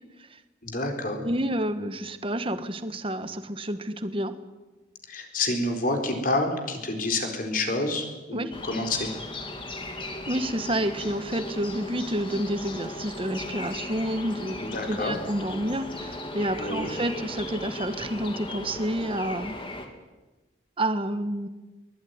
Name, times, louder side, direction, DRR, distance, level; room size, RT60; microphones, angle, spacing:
voice 1, 0.6-1.2 5.1-9.1 14.6-15.2 16.6-16.9, left 2 dB, 45° left, 4 dB, 4.3 m, -28 dB
voice 2, 1.2-4.4 8.3-8.5 10.3-14.6 14.9-19.6 20.8-21.5, right 1 dB, 30° right, 10 dB, 1.5 m, -29 dB
sound 1, 8.5-19.9, left 1 dB, 25° left, 2.8 m, -37 dB
23.0 x 20.0 x 9.6 m, 1.2 s
head